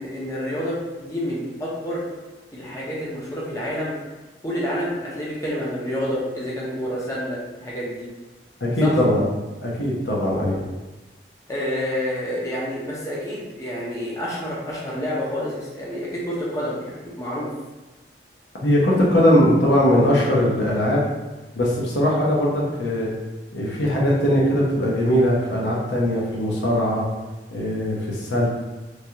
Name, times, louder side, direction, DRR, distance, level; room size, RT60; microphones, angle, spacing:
voice 1, 0.0-2.0 2.5-3.9 4.4-8.1 8.8-8.9 11.5-17.5, equal, 20° left, -6 dB, 0.6 m, -28 dB
voice 2, 8.6-9.3 9.6-10.6 18.6-21.0 21.6-23.1 23.5-27.0 27.5-28.5, equal, 75° left, -4 dB, 0.8 m, -20 dB
3.2 x 2.3 x 2.7 m, 1.1 s
head